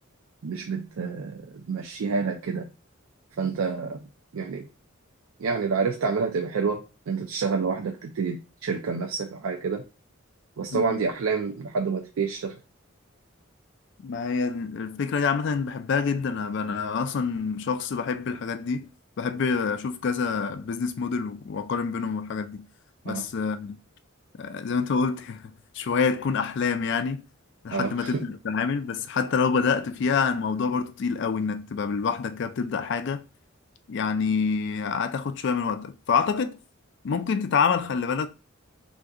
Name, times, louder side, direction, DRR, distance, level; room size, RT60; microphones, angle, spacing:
voice 1, 0.4-2.7 3.4-4.0 4.3-4.7 5.4-6.8 7.1-9.8 10.6-12.6 23.1-23.3 27.7-28.2, right 5 dB, 90° right, 0.4 m, -28 dB
voice 2, 10.7-11.0 14.0-18.9 19.2-22.7 23.0-23.8 24.4-27.2 27.6-33.2 33.9-36.6 37.0-38.3, left 5 dB, 60° left, 0.3 m, -27 dB
3.6 x 2.5 x 2.3 m
head